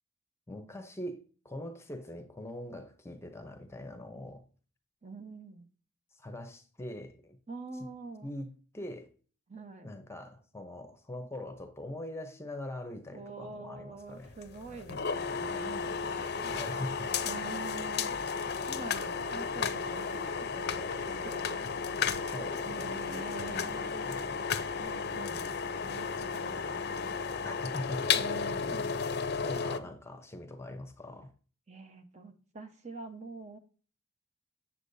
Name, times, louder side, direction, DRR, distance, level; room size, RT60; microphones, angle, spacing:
voice 1, 0.5-4.4 6.2-7.4 8.2-9.1 9.8-14.4 14.7-14.8 16.5-17.1 22.3-23.0 23.5-24.5 27.4-28.2 28.6-28.9 29.4-31.3, left 1 dB, 15° left, 0.8 m, -42 dB
voice 2, 5.0-5.7 7.5-8.3 9.5-9.9 13.1-16.5 17.2-18.2 18.7-21.7 22.6-24.2 24.8-27.1 28.1-28.8 31.7-33.6, right 3 dB, 35° right, 1.0 m, -46 dB
sound 1, 14.2-29.8, left 6 dB, 55° left, 0.6 m, -33 dB
Laughter, 15.9-21.8 22.2-24.8, equal, 70° right, 2.5 m, -50 dB
8.2 x 7.2 x 2.7 m
head